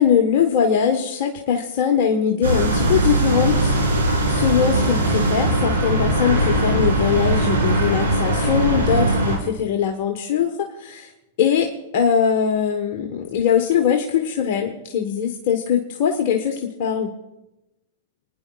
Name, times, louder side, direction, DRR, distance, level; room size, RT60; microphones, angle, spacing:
voice 1, 0.0-3.7 4.2-10.5 10.8-11.1 11.4-17.1, left 8 dB, 55° left, 3 dB, 1.2 m, -21 dB
sound 1, 2.4-9.4, right 1 dB, 80° right, 3.4 m, -20 dB
25.0 x 10.0 x 2.4 m, 0.99 s
hypercardioid pair, 110°, 0 cm